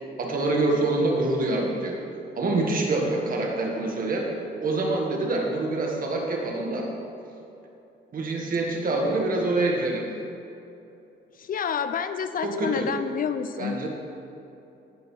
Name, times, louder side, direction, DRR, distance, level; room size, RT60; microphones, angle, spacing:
voice 1, 0.2-2.0 2.4-4.3 4.6-6.9 8.1-10.1 12.4-12.9 13.6-13.9, right 2 dB, 45° right, 0 dB, 1.9 m, -25 dB
voice 2, 11.4-13.8, left 7 dB, 45° left, 10 dB, 0.5 m, -29 dB
16.0 x 5.9 x 3.5 m, 2.8 s
cardioid pair, 85°, 19 cm